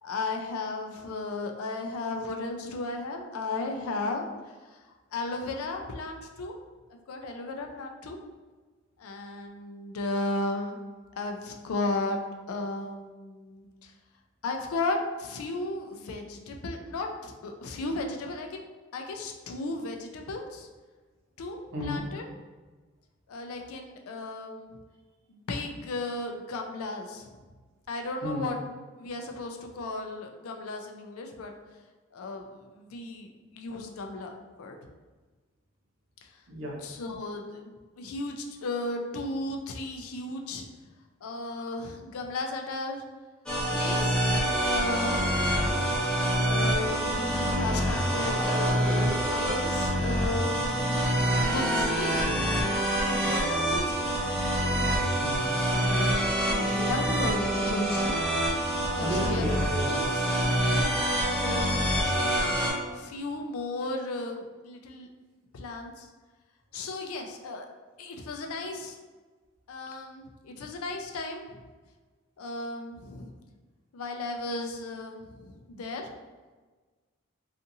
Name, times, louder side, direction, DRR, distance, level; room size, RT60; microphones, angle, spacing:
voice 1, 0.0-4.8 5.1-6.6 7.1-8.2 9.0-10.8 11.2-12.2 12.5-13.9 14.4-18.6 18.9-20.7 21.4-22.3 23.3-24.8 25.3-27.3 27.9-28.6 29.0-31.5 32.1-34.8 36.2-36.3 36.8-40.7 41.2-43.0 43.7-45.6 46.3-51.0 51.5-52.2 53.0-54.1 56.4-58.2 58.7-59.5 59.9-62.1 62.9-65.1 65.5-66.1 66.7-67.7 68.0-69.0 69.7-71.6 72.4-73.3 73.9-76.1, left 2 dB, 85° left, 3 dB, 0.4 m, -35 dB
voice 2, 21.7-22.1 28.2-28.5 36.5-36.8 52.2-52.5 55.2-55.4 58.9-60.1 60.6-60.9, equal, 60° right, -2 dB, 0.6 m, -34 dB
sound 1, 43.5-62.7, right 1 dB, 5° left, 0.5 m, -26 dB
2.6 x 2.4 x 2.6 m, 1.3 s
head